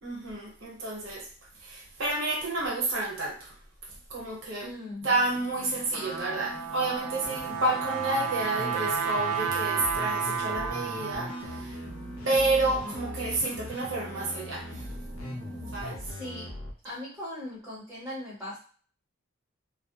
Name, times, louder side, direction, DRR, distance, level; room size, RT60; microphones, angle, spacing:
voice 1, 0.0-1.3 1.6-3.5 4.1-4.7 5.0-11.8 12.3-14.9 15.7-16.0, right 2 dB, 60° right, -2 dB, 0.9 m, -30 dB
voice 2, 4.6-5.1 16.0-16.5 16.8-18.6, left 1 dB, 5° right, -9 dB, 0.7 m, -39 dB
sound 1, 5.0-15.9, right 1 dB, 35° left, 1.2 m, -46 dB
Trumpet, 5.7-11.6, right 7 dB, 75° right, 0.4 m, -32 dB
sound 2, 7.2-16.7, left 1 dB, 65° left, 0.5 m, -40 dB
2.2 x 2.0 x 2.8 m, 0.42 s
head